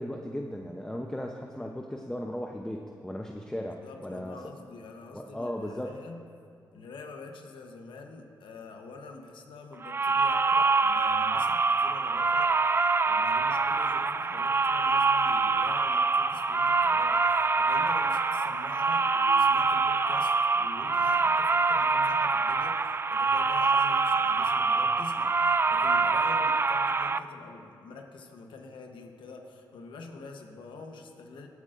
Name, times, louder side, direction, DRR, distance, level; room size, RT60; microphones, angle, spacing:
voice 1, 0.0-4.4 5.1-5.9, equal, 5° left, 2 dB, 0.7 m, -36 dB
voice 2, 3.6-6.3 6.7-31.5, left 3 dB, 80° left, 3 dB, 0.9 m, -46 dB
sound 1, 9.8-27.2, right 4 dB, 30° right, 0.3 m, -25 dB
19.5 x 8.3 x 2.5 m, 2.3 s
cardioid pair, 55°, 8 cm